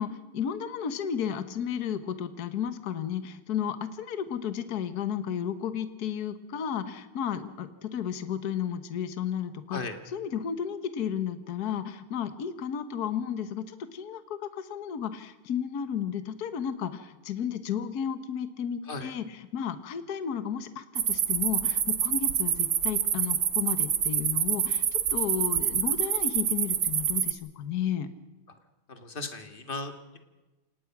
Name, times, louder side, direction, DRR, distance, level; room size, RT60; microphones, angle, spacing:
voice 1, 0.0-28.1, left 8 dB, 55° left, 11 dB, 1.6 m, -33 dB
sound 1, 21.0-27.3, right 9 dB, 75° right, 2.0 m, -27 dB
voice 2, 28.9-30.2, left 3 dB, 25° left, 7 dB, 2.1 m, -37 dB
28.0 x 19.0 x 6.0 m, 1.1 s
omnidirectional pair, 2.1 m